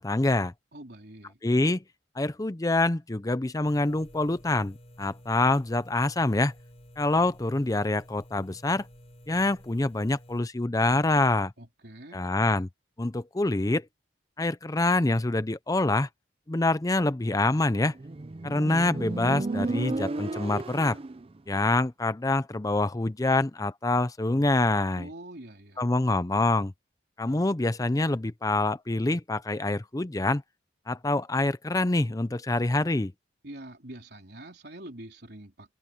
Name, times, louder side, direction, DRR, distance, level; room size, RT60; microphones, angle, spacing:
voice 1, 0.0-0.5 1.4-1.8 2.2-6.5 7.0-8.9 9.3-11.5 12.1-12.7 13.0-13.9 14.4-16.1 16.5-17.9 18.4-21.0 21.5-25.1 25.8-26.7 27.2-30.4 30.9-33.1, left 2 dB, 20° left, 0.6 m, -26 dB
voice 2, 0.7-1.4 11.6-12.2 25.0-25.9 33.4-35.7, right 1 dB, 60° right, 4.0 m, -45 dB
sound 1, 3.6-10.4, equal, 35° left, 3.7 m, -52 dB
Motorcycle, 17.8-21.3, right 2 dB, 30° right, 0.5 m, -33 dB
open air
head